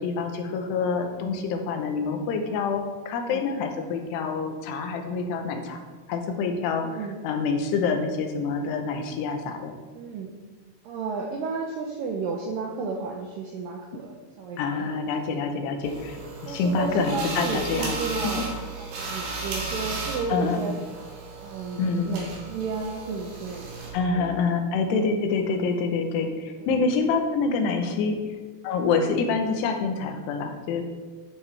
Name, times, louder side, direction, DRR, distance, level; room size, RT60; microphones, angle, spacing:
voice 1, 0.0-9.7 14.6-16.2 16.4-18.0 18.2-18.4 20.3-20.6 21.8-22.1 23.9-28.2 28.6-30.8, left 4 dB, 85° left, 5 dB, 3.0 m, -26 dB
voice 2, 3.1-3.5 6.8-7.2 9.9-10.3 10.8-15.3 16.2-20.7 21.4-23.7 24.1-24.3 26.6-26.7 27.9-28.0, right 4 dB, 80° right, 0 dB, 2.0 m, -33 dB
sound 1, 15.8-23.9, right 3 dB, 60° right, 2.7 m, -35 dB
10.5 x 7.2 x 3.3 m, 1.4 s
omnidirectional pair, 4.8 m